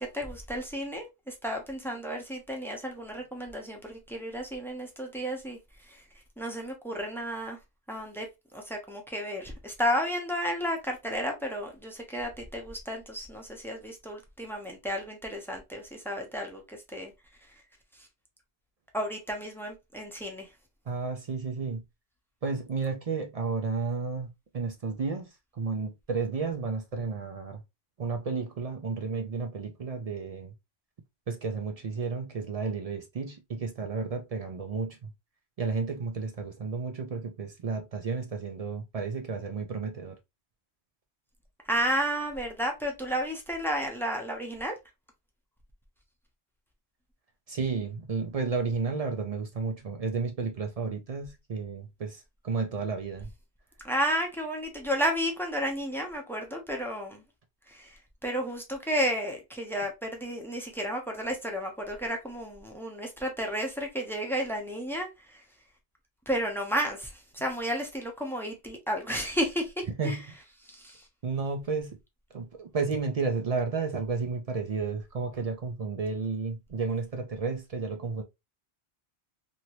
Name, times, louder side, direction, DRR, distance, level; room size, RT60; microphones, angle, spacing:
voice 1, 0.0-5.6 5.9-6.0 6.4-7.6 7.9-8.3 8.5-17.1 18.9-20.5 41.7-44.7 53.8-57.2 57.7-65.4 66.3-69.7 70.0-70.2 70.7-71.0, equal, ahead, 0.7 m, -32 dB
voice 2, 20.9-21.8 22.4-24.3 24.5-27.6 28.0-30.5 31.3-35.1 35.6-40.2 47.5-53.3 70.0-70.3 71.2-72.0 72.3-78.2, right 4 dB, 50° right, 0.4 m, -32 dB
2.8 x 2.7 x 2.9 m
omnidirectional pair, 1.1 m